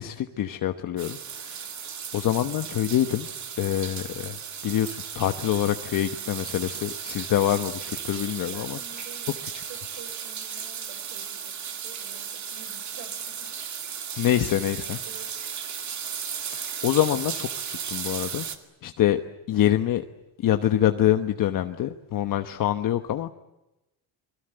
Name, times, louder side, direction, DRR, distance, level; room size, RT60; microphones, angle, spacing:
voice 1, 0.0-1.7 2.1-3.3 3.6-8.8 14.2-15.0 16.5-18.5 18.8-19.2 19.5-20.0 20.4-23.3, left 12 dB, 50° left, 7 dB, 1.1 m, -25 dB
sound 1, 1.0-18.6, right 8 dB, 40° right, 2.3 m, -35 dB
voice 2, 8.2-13.6 15.1-15.3, right 7 dB, 70° right, 11 dB, 5.6 m, -49 dB
30.0 x 22.5 x 7.9 m, 0.95 s
cardioid pair, 150°, 43 cm